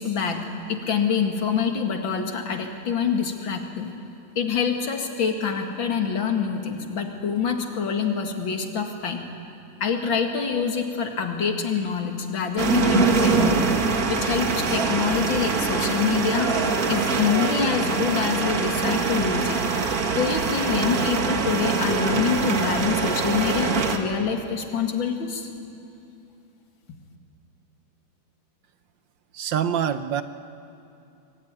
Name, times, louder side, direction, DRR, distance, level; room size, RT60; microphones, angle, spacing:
voice 1, 0.0-3.9 4.4-9.3 9.8-13.6 14.0-16.5 16.9-19.6 20.2-25.5, left 6 dB, 65° left, 4 dB, 2.8 m, -26 dB
sound 1, 12.6-24.0, right 4 dB, 45° right, 2.0 m, -23 dB
voice 2, 29.3-30.2, right 8 dB, 65° right, 11 dB, 1.4 m, -25 dB
24.5 x 23.0 x 9.8 m, 2.7 s
omnidirectional pair, 2.3 m